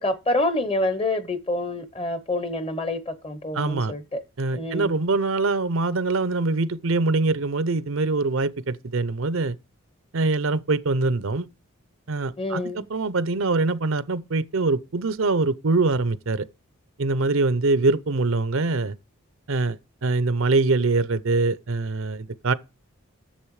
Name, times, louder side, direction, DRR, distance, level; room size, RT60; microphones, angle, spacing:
voice 1, 0.0-4.2 4.5-5.0 12.4-12.9, left 2 dB, 25° left, 0.9 m, -27 dB
voice 2, 3.5-3.9 4.4-9.5 10.1-11.5 12.1-16.5 17.0-18.9 19.5-22.5, right 3 dB, 70° right, 0.7 m, -23 dB
10.5 x 7.3 x 4.8 m
head